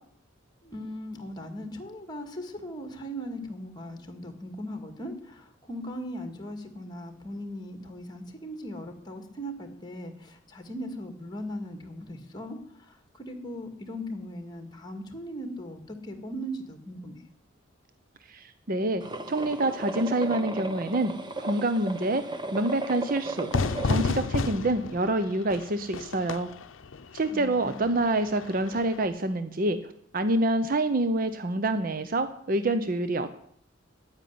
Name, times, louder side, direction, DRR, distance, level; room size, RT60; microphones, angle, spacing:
voice 1, 0.6-17.2 27.3-27.9, equal, 20° left, 6 dB, 1.9 m, -39 dB
voice 2, 18.3-22.2 22.5-23.5 23.8-26.5 27.1-29.8 30.1-33.3, right 2 dB, 45° right, 10 dB, 0.7 m, -27 dB
sound 1, 19.0-24.1, right 2 dB, 20° right, 1.0 m, -36 dB
Fire / Fireworks, 23.5-29.0, left 3 dB, 75° left, 0.6 m, -32 dB
9.8 x 9.1 x 9.5 m, 0.67 s
head